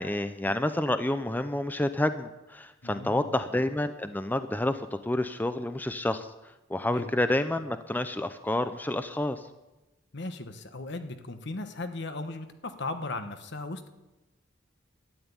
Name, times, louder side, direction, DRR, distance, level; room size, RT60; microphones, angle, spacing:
voice 1, 0.0-6.3 6.7-9.4, left 1 dB, 10° left, 10 dB, 0.6 m, -29 dB
voice 2, 2.8-3.3 6.9-7.1 10.1-13.9, left 2 dB, 65° left, 8 dB, 1.3 m, -37 dB
12.5 x 9.2 x 9.7 m, 1.0 s
head